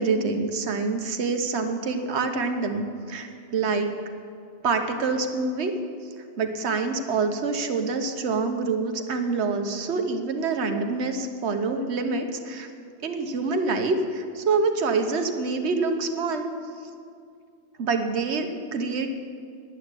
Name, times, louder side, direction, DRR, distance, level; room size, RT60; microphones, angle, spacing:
voice 1, 0.0-4.0 4.6-5.7 6.4-12.7 13.0-16.5 17.8-19.1, right 4 dB, 80° right, 6 dB, 1.3 m, -26 dB
10.5 x 8.8 x 9.8 m, 2.3 s
omnidirectional pair, 1.1 m